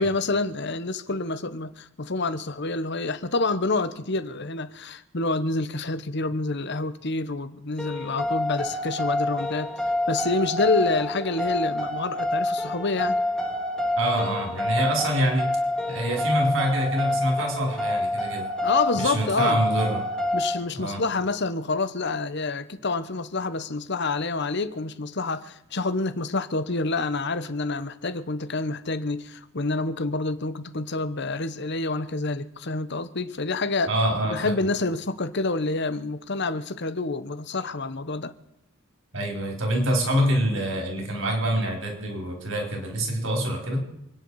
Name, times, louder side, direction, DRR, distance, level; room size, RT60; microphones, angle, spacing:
voice 1, 0.0-13.2 18.6-19.6 20.3-33.9 34.3-38.3, left 3 dB, 55° left, 1.1 m, -28 dB
sound 1, 7.8-20.6, left 1 dB, 5° left, 2.1 m, -27 dB
voice 2, 14.0-15.5 15.9-18.5 19.0-20.1 20.8-21.0 33.9-34.7 39.1-43.8, right 1 dB, 65° right, 4.3 m, -26 dB
28.0 x 10.0 x 4.8 m
head